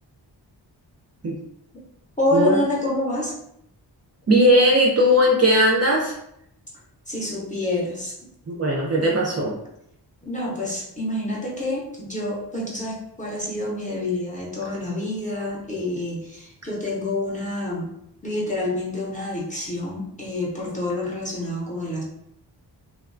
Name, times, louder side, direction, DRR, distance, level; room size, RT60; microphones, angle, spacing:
voice 1, 2.2-3.4 7.1-8.2 10.2-17.9 18.2-22.0, left 1 dB, 15° left, -5 dB, 0.6 m, -27 dB
voice 2, 4.3-6.1 8.5-9.6, equal, 35° right, -3 dB, 0.4 m, -18 dB
3.0 x 2.1 x 2.4 m, 0.76 s
wide cardioid pair, 165°, 45 cm